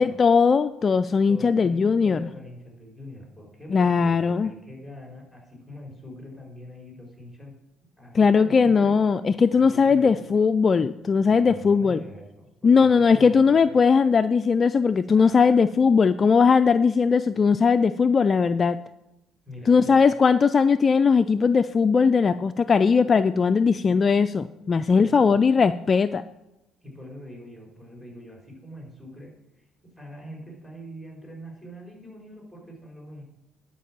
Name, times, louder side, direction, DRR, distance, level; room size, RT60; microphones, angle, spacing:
voice 1, 0.0-2.3 3.7-4.5 8.1-12.0 12.6-18.8 19.7-26.2, left 5 dB, 35° left, 11 dB, 0.4 m, -19 dB
voice 2, 1.3-7.5 8.0-8.9 9.5-10.4 11.3-13.8 15.1-15.7 19.4-20.0 24.9-25.4 26.8-29.7 30.0-33.2, equal, ahead, -1 dB, 4.7 m, -43 dB
11.0 x 5.3 x 7.5 m, 0.92 s
cardioid pair, 95°, 0 cm